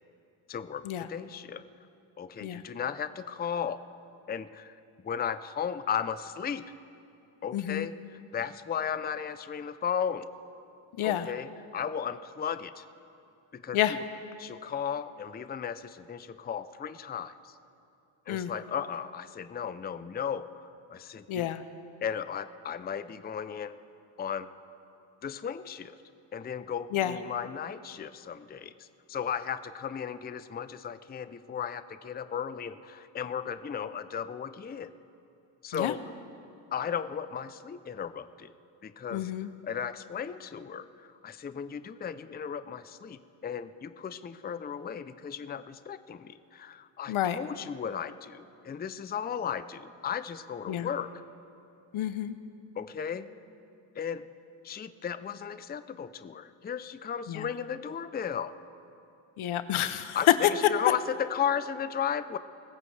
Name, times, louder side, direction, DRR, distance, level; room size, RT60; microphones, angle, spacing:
voice 1, 0.5-1.6 2.2-3.8 4.3-6.6 7.4-10.3 11.0-11.5 11.7-12.8 13.5-14.0 14.4-17.6 18.3-21.5 22.0-23.8 24.2-24.5 25.2-26.0 26.3-34.9 35.6-36.0 36.7-38.5 38.8-39.3 39.6-51.2 52.8-53.3 54.0-54.3 54.6-58.5 60.1-62.4, left 8 dB, 20° left, 13 dB, 0.5 m, -35 dB
voice 2, 7.5-7.9 11.0-11.3 13.7-14.0 18.3-18.5 21.3-21.6 26.9-27.1 35.7-35.9 39.1-39.5 47.1-47.4 50.7-50.9 51.9-52.4 57.3-57.5 59.4-60.2, left 12 dB, 75° left, 12 dB, 0.8 m, -30 dB
24.0 x 14.5 x 3.3 m, 2.7 s
cardioid pair, 70°, 49 cm